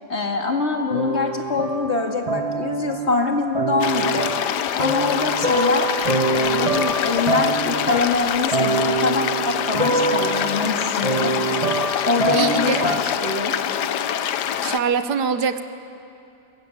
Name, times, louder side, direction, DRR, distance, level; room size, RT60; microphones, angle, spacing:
voice 1, 0.1-4.3 4.8-5.9 6.2-11.4 12.0-13.6, left 4 dB, 40° left, 3 dB, 2.2 m, -24 dB
sound 1, 0.9-3.2 3.5-13.3, right 3 dB, 25° right, 1.3 m, -25 dB
sound 2, 3.8-14.8, left 9 dB, 85° left, 1.4 m, -25 dB
voice 2, 12.3-12.8 14.6-15.6, right 6 dB, 80° right, 10 dB, 1.7 m, -23 dB
23.0 x 21.0 x 8.6 m, 2.6 s
omnidirectional pair, 1.7 m